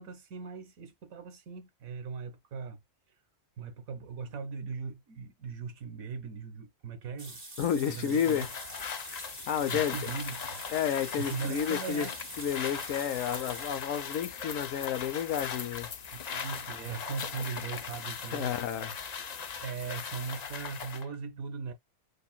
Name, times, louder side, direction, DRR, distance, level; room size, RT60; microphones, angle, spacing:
voice 1, 0.0-2.8 3.6-7.4 7.9-8.5 9.7-10.6 11.2-12.2 16.1-18.5 19.2-21.7, right 5 dB, 90° right, 1.5 m, -39 dB
sound 1, 7.2-13.9, right 2 dB, 55° right, 2.0 m, -46 dB
voice 2, 7.6-8.5 9.5-9.9 10.7-12.1 12.4-15.9 18.3-18.9, left 8 dB, 75° left, 1.1 m, -31 dB
sound 2, 8.1-21.1, left 6 dB, 55° left, 0.4 m, -39 dB
6.7 x 2.6 x 2.2 m
omnidirectional pair, 1.4 m